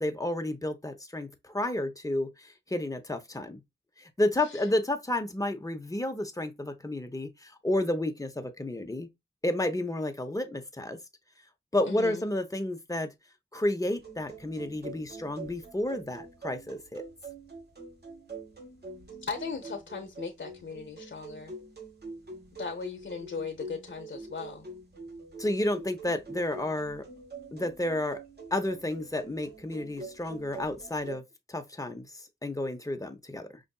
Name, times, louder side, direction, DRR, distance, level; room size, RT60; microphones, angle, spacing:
voice 1, 0.0-3.6 4.0-9.1 9.4-11.0 11.7-13.1 13.5-17.0 25.4-27.1 27.5-28.2 28.5-33.6, left 1 dB, 15° left, 0.8 m, -31 dB
voice 2, 11.8-12.3 19.2-21.5 22.6-24.7, left 5 dB, 70° left, 0.7 m, -38 dB
sound 1, 14.0-31.2, right 3 dB, 55° right, 1.7 m, -45 dB
5.4 x 2.5 x 2.3 m
wide cardioid pair, 70°, 20 cm